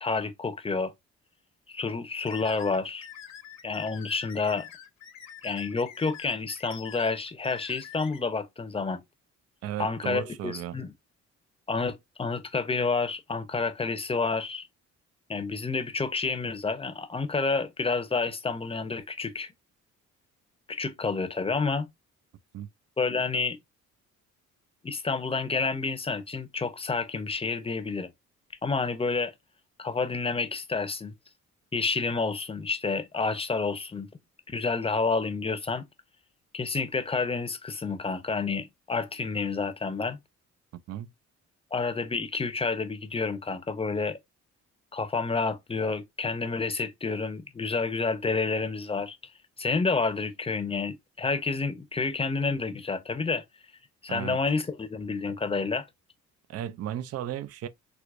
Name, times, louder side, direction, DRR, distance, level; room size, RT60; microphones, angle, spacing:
voice 1, 0.0-0.9 1.7-3.1 3.6-4.7 5.4-9.0 9.8-10.9 11.7-14.7 15.3-19.5 20.7-21.9 23.0-23.6 24.8-28.1 28.6-29.3 29.8-31.1 31.7-34.1 34.5-35.8 36.5-40.2 41.7-44.2 44.9-49.2 49.6-53.4 54.0-55.9, left 4 dB, 20° left, 0.7 m, -29 dB
sound 1, 2.3-8.2, left 9 dB, 60° left, 0.9 m, -46 dB
voice 2, 9.6-10.8 22.5-22.7 40.9-41.1 54.1-54.4 56.5-57.7, right 11 dB, 55° right, 0.4 m, -35 dB
4.7 x 2.1 x 2.5 m
cardioid pair, 90°, 30 cm